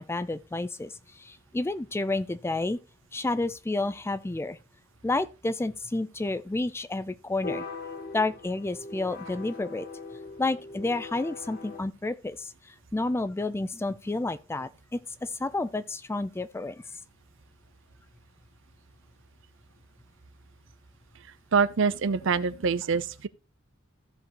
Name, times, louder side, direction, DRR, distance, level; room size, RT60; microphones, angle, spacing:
voice 1, 0.0-2.8 3.1-4.6 5.0-7.6 8.1-9.9 10.4-16.8, left 2 dB, 10° left, 0.3 m, -30 dB
sound 1, 7.4-11.8, left 3 dB, 50° left, 1.3 m, -40 dB
voice 2, 21.5-23.3, right 5 dB, 65° right, 0.5 m, -25 dB
15.0 x 5.1 x 2.9 m
head